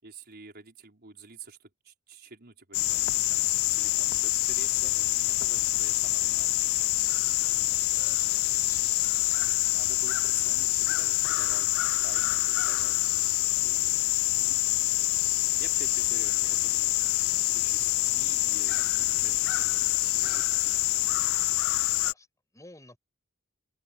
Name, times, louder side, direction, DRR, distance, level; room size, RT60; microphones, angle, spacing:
voice 1, 0.0-6.5 9.6-13.9 15.6-20.8, right 4 dB, 45° right, 4.9 m, -49 dB
sound 1, 2.7-22.1, left 21 dB, 65° left, 0.3 m, -26 dB
voice 2, 7.6-9.2 22.0-22.3 22.5-23.0, left 2 dB, 15° left, 6.5 m, -53 dB
head